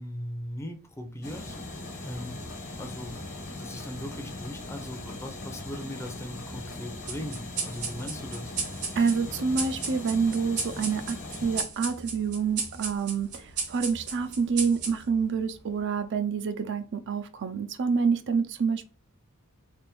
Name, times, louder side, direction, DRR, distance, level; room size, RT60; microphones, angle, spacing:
voice 1, 0.0-1.6 2.1-2.4 2.8-3.3 3.5-8.5, equal, 10° left, 0.6 m, -39 dB
sound 1, 1.2-11.6, left 2 dB, 50° left, 1.3 m, -40 dB
sound 2, 7.1-16.0, right 5 dB, 85° right, 1.4 m, -36 dB
voice 2, 9.0-18.8, right 5 dB, 55° right, 0.4 m, -27 dB
3.4 x 2.5 x 4.5 m
head